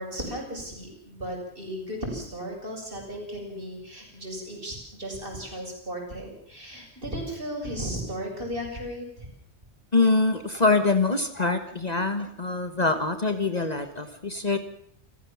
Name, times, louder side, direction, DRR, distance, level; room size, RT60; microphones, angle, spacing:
voice 1, 0.0-9.3, equal, 50° right, 1 dB, 7.2 m, -35 dB
voice 2, 9.9-14.6, left 3 dB, 35° left, 9 dB, 1.5 m, -24 dB
28.5 x 15.0 x 7.2 m, 0.63 s
omnidirectional pair, 1.2 m